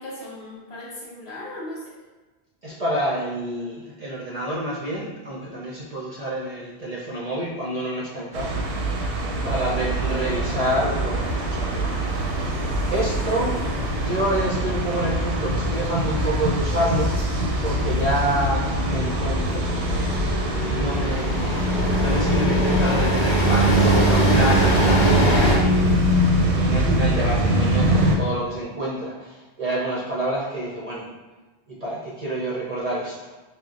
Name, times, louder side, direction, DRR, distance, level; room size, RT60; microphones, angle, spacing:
voice 1, 0.0-2.0 9.3-9.8, left 1 dB, 70° left, -4 dB, 1.2 m, -38 dB
voice 2, 2.6-12.6 12.9-13.6 13.9-17.3 17.6-20.1 20.6-31.1 31.7-33.3, right 1 dB, 45° right, -5 dB, 0.5 m, -28 dB
sound 1, 8.3-28.2, right 1 dB, 90° right, 0.9 m, -23 dB
sound 2, 9.7-25.6, equal, 50° left, 1.0 m, -26 dB
5.2 x 2.1 x 2.4 m, 1.2 s
omnidirectional pair, 1.1 m